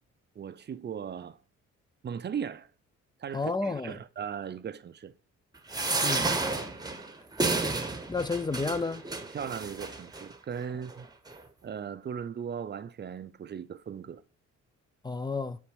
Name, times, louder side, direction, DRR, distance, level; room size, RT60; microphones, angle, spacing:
voice 1, 0.4-1.4 2.0-2.7 3.2-5.1 9.3-11.1 11.6-14.2, right 7 dB, 35° right, 0.5 m, -38 dB
voice 2, 3.3-3.9 6.0-6.4 8.1-9.0 15.0-15.6, left 3 dB, 15° left, 0.4 m, -31 dB
sound 1, 5.7-10.2 10.9-11.0 11.3-11.4, right 3 dB, 15° right, 0.9 m, -31 dB
5.9 x 4.5 x 6.3 m
cardioid pair, 90°, 30 cm